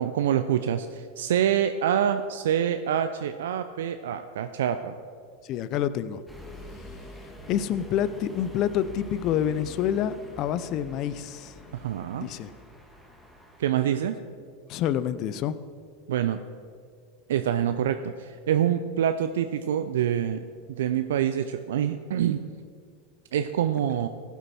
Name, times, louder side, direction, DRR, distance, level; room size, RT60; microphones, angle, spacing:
voice 1, 0.0-4.9 11.7-12.3 13.6-14.2 16.1-16.4 17.3-22.4 23.3-24.1, right 9 dB, 75° right, 9 dB, 0.4 m, -26 dB
voice 2, 5.4-6.2 7.5-11.7 12.2-12.5 14.7-15.6, left 10 dB, 50° left, 15 dB, 0.6 m, -28 dB
sound 1, 6.3-14.1, left 1 dB, 5° left, 1.7 m, -46 dB
15.0 x 8.2 x 4.3 m, 2.2 s
hypercardioid pair, 95°, 0 cm